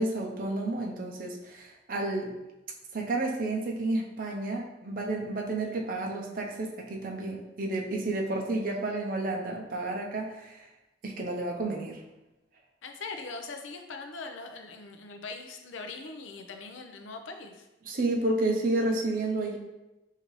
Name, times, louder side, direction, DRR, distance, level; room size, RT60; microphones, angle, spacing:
voice 1, 0.0-2.3 2.9-10.7 11.0-12.0 17.8-19.6, right 2 dB, 45° right, 0 dB, 0.5 m, -31 dB
voice 2, 12.8-17.7, left 3 dB, 80° left, 4 dB, 0.5 m, -41 dB
5.1 x 2.7 x 3.0 m, 0.98 s
head